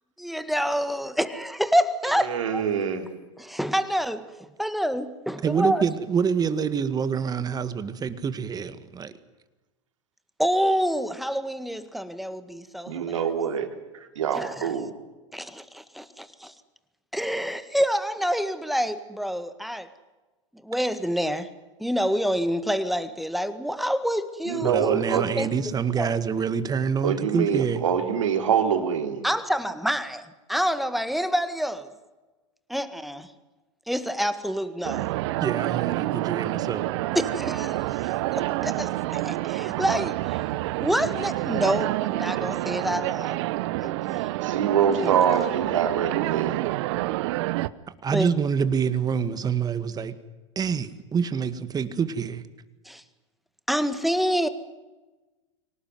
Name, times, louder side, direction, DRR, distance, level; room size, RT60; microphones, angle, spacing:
voice 1, 0.2-2.6 3.4-4.3 4.6-5.9 10.4-13.2 14.3-14.7 15.3-16.5 17.1-19.9 20.6-21.5 21.8-25.5 26.0-26.1 29.2-31.9 32.7-33.3 33.9-35.1 37.1-40.4 40.8-43.4 43.8-44.3 45.0-45.1 48.1-48.3 52.9-53.0 53.7-54.5, equal, ahead, 11 dB, 1.8 m, -27 dB
voice 2, 2.3-3.0 12.9-13.7 14.2-14.9 24.5-25.3 27.0-29.3 44.4-46.6, right 8 dB, 85° right, 6 dB, 3.6 m, -25 dB
voice 3, 5.4-9.1 24.6-27.8 35.4-36.9 48.0-50.1 50.6-52.4, right 6 dB, 25° right, 12 dB, 1.9 m, -26 dB
sound 1, 34.8-47.7, right 18 dB, 60° right, 0.9 m, -28 dB
24.5 x 18.5 x 9.5 m, 1.2 s
hypercardioid pair, 105°, 16 cm